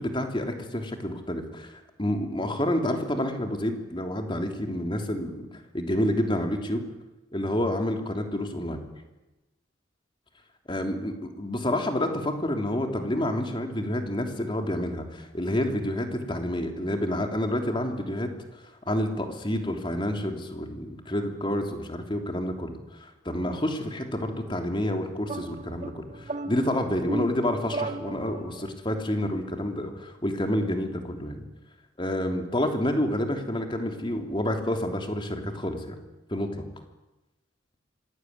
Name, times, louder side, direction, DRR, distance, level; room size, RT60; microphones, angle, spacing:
voice 1, 0.0-5.5 5.7-6.8 7.3-8.8 10.7-18.3 18.9-22.7 23.0-31.4 32.0-35.9 36.3-36.6, left 1 dB, 25° left, 4 dB, 3.3 m, -29 dB
sound 1, 25.3-28.7, right 2 dB, 40° right, 1.9 m, -35 dB
25.5 x 19.5 x 9.7 m, 1.0 s
head